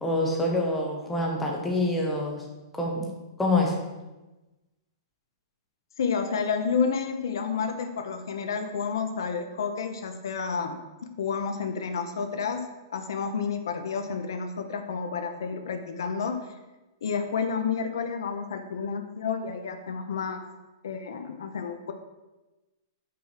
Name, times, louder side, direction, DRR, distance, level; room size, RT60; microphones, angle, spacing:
voice 1, 0.0-2.4 2.7-3.1 3.4-3.7, left 2 dB, 5° left, -2 dB, 0.9 m, -26 dB
voice 2, 6.0-10.8 11.2-16.5 17.0-20.4 20.8-21.9, left 6 dB, 80° left, 6 dB, 0.7 m, -30 dB
6.0 x 4.7 x 5.8 m, 1.1 s
hypercardioid pair, 175°, 2 cm